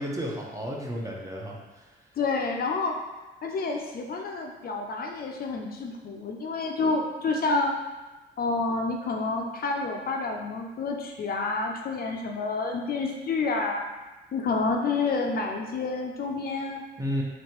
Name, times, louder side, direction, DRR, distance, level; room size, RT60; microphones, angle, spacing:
voice 1, 0.0-1.9 17.0-17.2, equal, 15° right, -2 dB, 0.8 m, -32 dB
voice 2, 2.2-3.0 3.4-7.7 8.4-13.8 14.3-16.8, left 3 dB, 50° left, 1 dB, 0.5 m, -29 dB
3.1 x 2.9 x 4.4 m, 1.2 s
cardioid pair, 90°, 20 cm